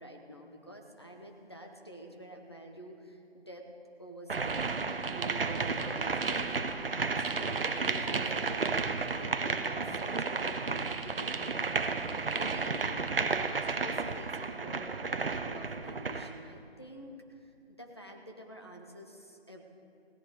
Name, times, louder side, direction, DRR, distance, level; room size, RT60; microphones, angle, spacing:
voice 1, 0.0-3.7 4.0-4.7 5.1-11.7 12.3-12.9 13.2-19.6, right 1 dB, 25° left, 1 dB, 0.8 m, -48 dB
sound 1, 4.3-16.4, right 4 dB, 60° right, 0.7 m, -32 dB
16.5 x 10.5 x 4.8 m, 2.6 s
figure-of-eight pair, 175°, 32 cm